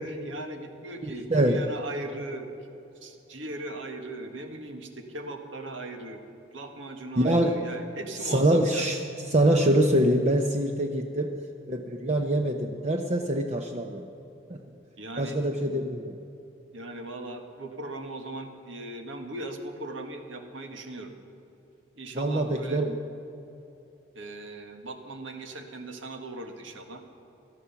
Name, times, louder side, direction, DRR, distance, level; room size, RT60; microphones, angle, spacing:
voice 1, 0.0-2.5 3.0-6.2 6.5-8.8 15.0-15.4 16.7-21.1 22.0-22.8 24.1-27.0, right 2 dB, 85° right, 5 dB, 1.7 m, -39 dB
voice 2, 1.0-1.6 7.2-7.5 8.2-11.3 11.7-14.0 14.5-14.6 15.2-16.1 22.1-23.0, right 1 dB, 35° right, 4 dB, 0.7 m, -24 dB
18.5 x 12.5 x 5.8 m, 3.0 s
head